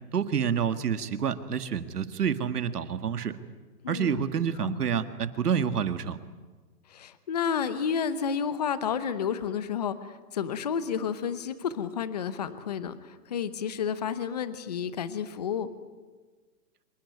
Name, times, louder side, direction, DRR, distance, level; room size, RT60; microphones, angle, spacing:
voice 1, 0.1-3.4 3.9-6.2, right 7 dB, 70° right, 10 dB, 1.9 m, -28 dB
voice 2, 3.8-4.2 6.9-15.7, left 7 dB, 25° left, 13 dB, 0.9 m, -31 dB
26.0 x 21.0 x 9.6 m, 1.4 s
hypercardioid pair, 170°, 48 cm